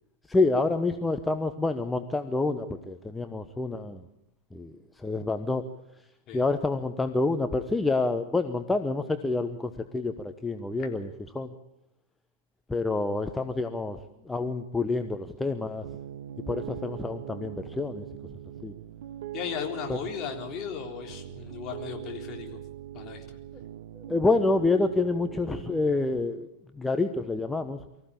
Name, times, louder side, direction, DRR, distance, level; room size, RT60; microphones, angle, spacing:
voice 1, 0.3-4.0 4.5-5.6 6.3-11.5 12.7-15.9 16.5-18.1 18.6-18.7 19.9-20.0 23.9-26.5 26.7-27.8, left 3 dB, 10° left, 7 dB, 1.1 m, -28 dB
Piano, 15.8-26.2, right 12 dB, 55° right, 0.8 m, -41 dB
voice 2, 19.3-22.6 22.9-23.2, left 8 dB, 30° left, 2 dB, 3.7 m, -36 dB
24.5 x 15.0 x 8.8 m, 0.84 s
figure-of-eight pair, 95°, 0 cm